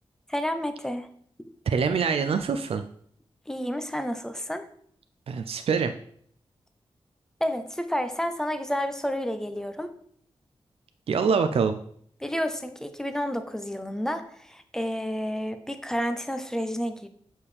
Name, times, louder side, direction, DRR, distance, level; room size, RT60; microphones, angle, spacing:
voice 1, 0.3-1.1 3.5-4.7 7.4-9.9 12.2-17.1, equal, 5° left, 8 dB, 0.7 m, -30 dB
voice 2, 1.7-2.8 5.3-5.9 11.1-11.8, right 5 dB, 70° right, 8 dB, 0.4 m, -24 dB
7.0 x 5.1 x 3.3 m, 0.63 s
wide cardioid pair, 80°, 10 cm